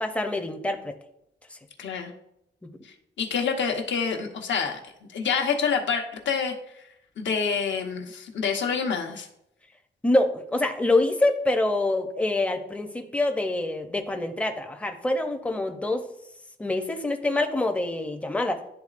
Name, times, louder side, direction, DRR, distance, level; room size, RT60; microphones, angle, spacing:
voice 1, 0.0-0.9 2.7-2.8 10.0-16.0 16.6-18.6, left 2 dB, 5° left, 5 dB, 0.5 m, -25 dB
voice 2, 1.8-2.1 2.8-4.8 5.1-6.8 7.2-9.3, left 6 dB, 75° left, 3 dB, 1.0 m, -27 dB
11.0 x 3.9 x 2.4 m, 0.80 s
wide cardioid pair, 165°, 19 cm